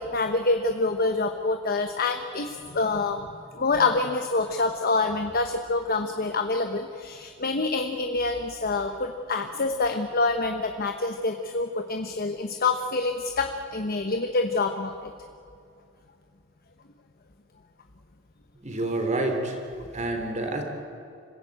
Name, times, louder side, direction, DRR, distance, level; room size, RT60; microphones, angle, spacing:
voice 1, 0.0-3.3 3.5-14.9, left 3 dB, 50° left, 6 dB, 1.1 m, -26 dB
voice 2, 18.6-19.6 19.9-20.6, right 2 dB, 35° right, 4 dB, 3.2 m, -28 dB
26.0 x 15.5 x 8.8 m, 2.5 s
head